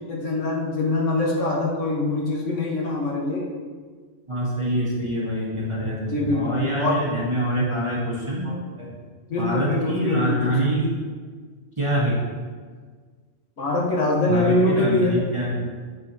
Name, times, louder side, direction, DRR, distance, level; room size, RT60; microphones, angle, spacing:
voice 1, 0.1-3.5 6.1-7.0 9.3-10.5 13.6-15.2, left 2 dB, 85° left, -3 dB, 1.5 m, -23 dB
voice 2, 4.3-9.0 9.4-10.9 11.8-12.2 14.3-15.7, right 1 dB, 25° right, -6 dB, 1.4 m, -25 dB
7.4 x 5.6 x 2.7 m, 1.6 s
omnidirectional pair, 1.2 m